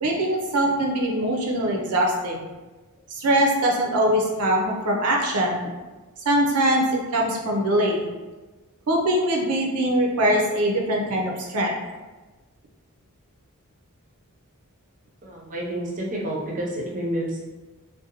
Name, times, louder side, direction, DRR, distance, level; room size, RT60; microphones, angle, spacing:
voice 1, 0.0-2.5 3.1-5.6 6.3-8.1 8.9-11.8, right 1 dB, 90° right, 0 dB, 0.6 m, -22 dB
voice 2, 15.2-17.4, right 1 dB, 35° right, -3 dB, 0.5 m, -29 dB
2.6 x 2.1 x 2.8 m, 1.2 s
head